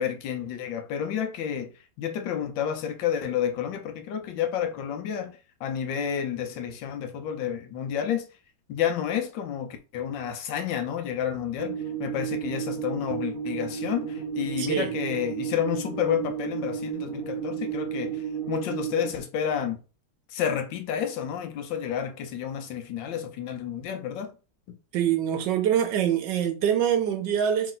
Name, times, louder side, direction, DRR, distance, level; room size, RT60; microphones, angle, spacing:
voice 1, 0.0-1.7 2.0-8.3 8.7-19.8 20.3-24.3 24.7-24.8, left 9 dB, 75° left, 1.3 m, -30 dB
sound 1, 11.6-19.1, right 8 dB, 30° right, 1.3 m, -33 dB
voice 2, 14.6-14.9 24.9-27.7, right 9 dB, 75° right, 1.1 m, -24 dB
3.2 x 3.0 x 3.8 m
omnidirectional pair, 2.2 m